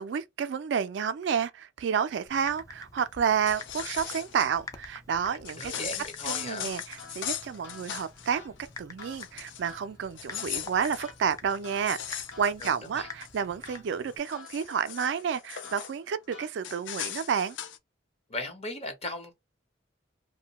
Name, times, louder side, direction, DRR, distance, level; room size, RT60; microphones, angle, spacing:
voice 1, 0.0-5.9 6.2-17.6, right 7 dB, 70° right, 0.3 m, -30 dB
Typing, 2.3-14.2, left 3 dB, 20° left, 0.4 m, -47 dB
sound 1, 3.3-4.5 5.4-8.3 8.6-8.8 9.1-9.7 10.1-13.4 13.9-15.9 16.6-17.8, left 10 dB, 90° left, 0.4 m, -39 dB
voice 2, 5.6-6.7 12.6-12.7 13.0-13.1 18.3-19.3, left 2 dB, 35° left, 0.9 m, -37 dB
sound 2, 6.3-16.9, left 4 dB, 70° left, 1.0 m, -52 dB
2.6 x 2.1 x 2.9 m
head